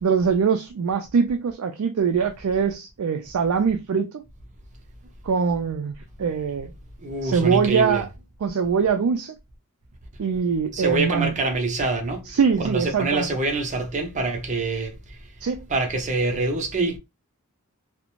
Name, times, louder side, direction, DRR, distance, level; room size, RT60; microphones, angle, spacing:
voice 1, 0.0-4.1 5.2-5.9 6.2-6.7 7.2-8.1 8.4-9.3 10.2-11.3 12.3-13.3 15.4-15.7, right 6 dB, 85° right, 0.4 m, -23 dB
voice 2, 7.0-8.0 10.7-12.3 12.6-15.2 15.7-17.0, right 3 dB, 35° right, 0.6 m, -25 dB
2.5 x 2.1 x 3.0 m
head